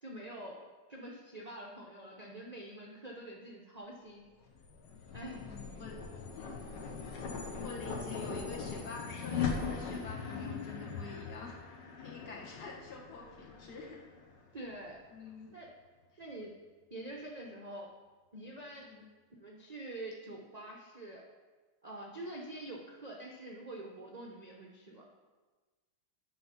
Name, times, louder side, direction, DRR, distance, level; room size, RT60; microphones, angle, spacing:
voice 1, 0.0-4.3 5.1-5.4 14.5-15.0 15.5-15.7 16.2-16.5 16.9-17.9 18.3-18.9 19.4-21.2 21.8-25.0, right 1 dB, 60° right, -1 dB, 0.4 m, -46 dB
sound 1, 4.4-14.9, left 6 dB, 80° left, 1.7 m, -40 dB
voice 2, 5.2-6.1 6.4-7.2 7.6-11.6 12.0-14.1 15.1-15.6 18.8-19.0, left 3 dB, 65° left, -3 dB, 1.9 m, -47 dB
8.7 x 4.1 x 5.6 m, 1.3 s
omnidirectional pair, 1.9 m